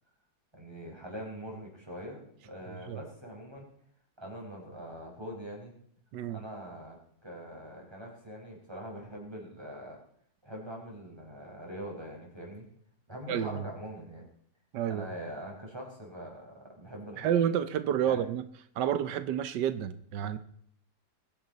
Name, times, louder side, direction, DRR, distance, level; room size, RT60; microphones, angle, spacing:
voice 1, 0.5-3.7 4.2-5.7 6.3-7.0 7.2-10.0 10.4-12.6 13.1-14.3 14.9-17.3 18.0-18.2, equal, 15° right, -1 dB, 5.1 m, -43 dB
voice 2, 13.3-13.6 14.7-15.1 17.2-18.4 18.8-20.4, right 9 dB, 90° right, 12 dB, 1.4 m, -29 dB
21.5 x 10.5 x 4.0 m, 0.65 s
omnidirectional pair, 1.8 m